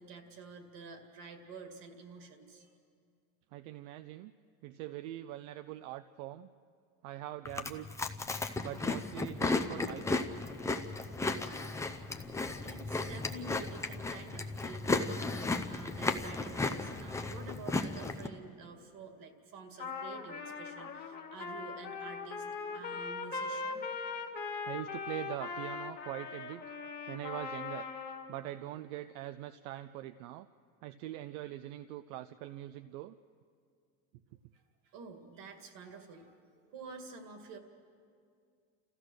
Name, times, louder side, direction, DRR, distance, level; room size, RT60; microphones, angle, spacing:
voice 1, 0.0-2.7 12.2-12.3 12.6-23.8 34.5-37.6, right 4 dB, 55° right, 5 dB, 2.3 m, -49 dB
voice 2, 3.5-4.3 4.6-6.5 7.0-7.9 8.6-10.3 22.7-23.0 24.6-26.6 27.1-27.9 28.3-30.5 30.8-33.2, right 14 dB, 80° right, 11 dB, 0.6 m, -43 dB
Chewing mastication, 7.4-18.3, left 3 dB, 5° left, 0.6 m, -35 dB
Trumpet, 19.8-28.3, left 4 dB, 25° left, 1.6 m, -40 dB
28.5 x 15.0 x 6.4 m, 2.3 s
cardioid pair, 150°, 40 cm